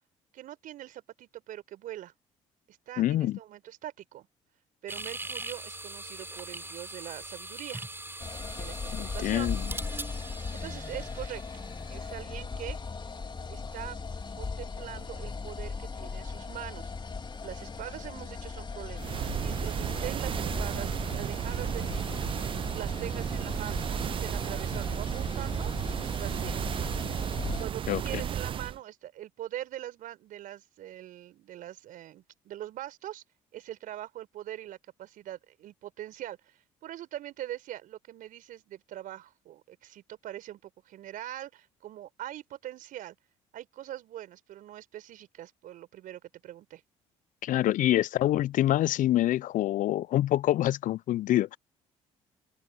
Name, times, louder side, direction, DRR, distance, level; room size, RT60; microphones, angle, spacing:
voice 1, 0.3-2.1 2.7-4.3 4.8-7.8 8.6-9.5 10.5-11.4 11.9-12.8 13.5-14.0 14.4-16.9 17.4-22.1 22.7-25.7 26.0-26.6 27.6-33.2 33.5-43.2 43.5-46.8, right 13 dB, 65° right, 4.4 m, -42 dB
voice 2, 3.0-3.4 8.9-9.7 27.9-28.2 47.4-51.6, left 13 dB, 60° left, 0.6 m, -26 dB
sound 1, 4.9-12.1, right 2 dB, 15° right, 7.8 m, -41 dB
sound 2, 8.2-27.7, left 4 dB, 30° left, 2.9 m, -38 dB
sound 3, 19.0-28.8, right 9 dB, 35° right, 0.3 m, -33 dB
open air
hypercardioid pair, 55°, 15 cm